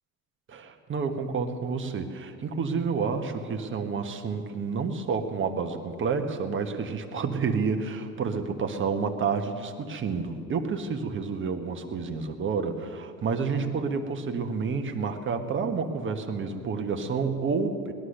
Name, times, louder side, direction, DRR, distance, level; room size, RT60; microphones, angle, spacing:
voice 1, 0.5-17.9, right 5 dB, 25° right, 5 dB, 1.5 m, -29 dB
19.5 x 11.0 x 6.6 m, 2.4 s
hypercardioid pair, 95°, 43 cm